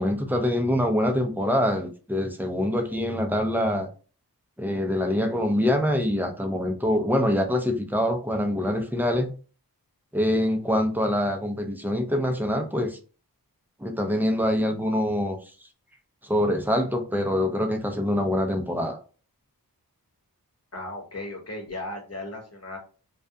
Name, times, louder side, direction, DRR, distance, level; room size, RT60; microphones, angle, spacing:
voice 1, 0.0-3.9 4.6-9.3 10.1-13.0 13.8-15.4 16.2-19.0, left 1 dB, 5° right, 3 dB, 0.5 m, -25 dB
voice 2, 20.7-22.8, left 1 dB, 40° left, 1 dB, 0.9 m, -36 dB
2.4 x 2.2 x 2.6 m, 0.37 s
wide cardioid pair, 50°, 37 cm